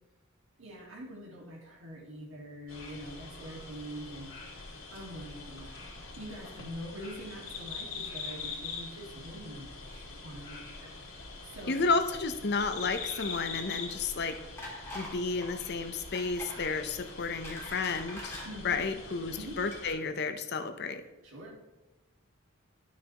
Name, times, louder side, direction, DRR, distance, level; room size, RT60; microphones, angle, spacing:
voice 1, 0.6-11.9 18.4-19.0 19.3-19.6 21.2-21.6, equal, 75° right, -2 dB, 1.9 m, -45 dB
sound 1, 2.7-19.9, left 4 dB, 80° left, 2.4 m, -44 dB
voice 2, 11.7-14.4 14.9-18.4 18.6-21.0, left 4 dB, 55° left, 8 dB, 0.7 m, -32 dB
sound 2, 14.6-15.2 15.4-15.6 16.1-16.6 17.1-18.5 19.2-19.4 19.7-19.8, left 1 dB, 15° left, 1.8 m, -43 dB
11.5 x 6.2 x 3.0 m, 1.1 s
head